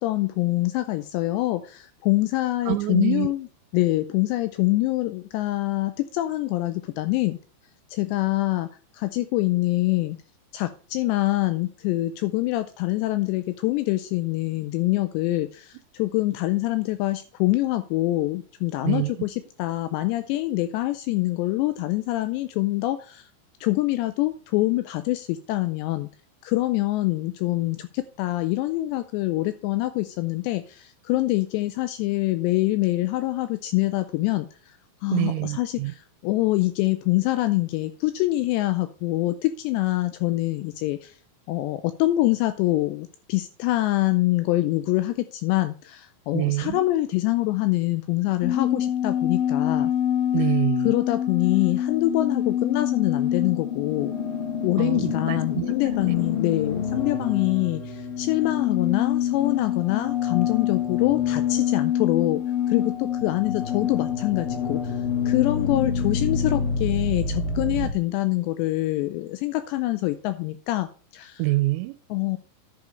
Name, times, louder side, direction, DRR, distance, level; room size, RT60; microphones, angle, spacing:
voice 1, 0.0-3.5 3.7-7.4 7.9-8.7 8.9-10.2 10.5-23.3 23.6-26.1 26.4-34.5 35.0-41.1 41.5-49.9 50.8-54.1 54.6-62.4 62.7-65.0 65.3-70.9 71.1-71.4 72.1-72.4, left 18 dB, 85° left, 2.6 m, -25 dB
voice 2, 2.7-3.3 18.8-19.1 35.1-35.9 46.3-46.9 50.3-50.9 54.8-55.7 56.0-56.2 71.4-72.0, right 20 dB, 90° right, 2.9 m, -26 dB
sound 1, 48.4-67.9, left 8 dB, 60° left, 3.6 m, -26 dB
10.5 x 5.1 x 5.2 m
omnidirectional pair, 5.2 m